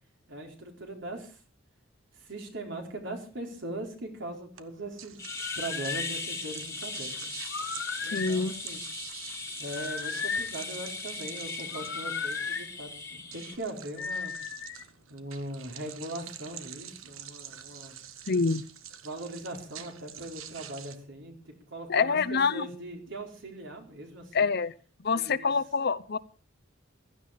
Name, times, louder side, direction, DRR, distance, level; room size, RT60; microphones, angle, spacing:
voice 1, 0.3-1.4 2.1-5.2 5.5-7.3 8.0-8.8 9.6-14.3 15.1-17.9 19.0-24.5 25.1-25.5, right 1 dB, 65° right, 2 dB, 4.3 m, -40 dB
sound 1, 4.6-21.0, right 10 dB, 80° right, 1.3 m, -47 dB
sound 2, 5.2-13.6, left 3 dB, 15° left, 1.8 m, -39 dB
sound 3, 5.3-6.1 7.5-8.4 9.7-10.6 11.7-12.7 14.0-14.8, left 5 dB, 70° left, 1.1 m, -35 dB
voice 2, 8.1-8.5 18.3-18.6 21.9-22.7 24.3-24.7 25.0-26.2, left 5 dB, 50° left, 14 dB, 0.8 m, -26 dB
16.0 x 13.0 x 5.1 m, 0.38 s
head